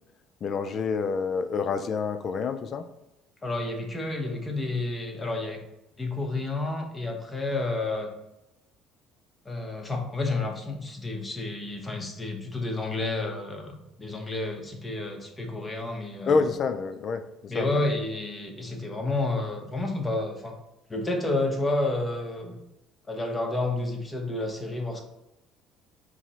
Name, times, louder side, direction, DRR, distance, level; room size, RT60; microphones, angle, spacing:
voice 1, 0.4-2.8 16.3-17.9, left 5 dB, 45° left, 10 dB, 0.4 m, -28 dB
voice 2, 3.4-5.6 6.0-8.1 9.5-16.5 17.5-20.6 20.9-22.6 23.1-25.0, left 2 dB, 20° left, 2 dB, 0.7 m, -30 dB
4.8 x 2.0 x 4.0 m, 0.89 s
cardioid pair, 110°, 0 cm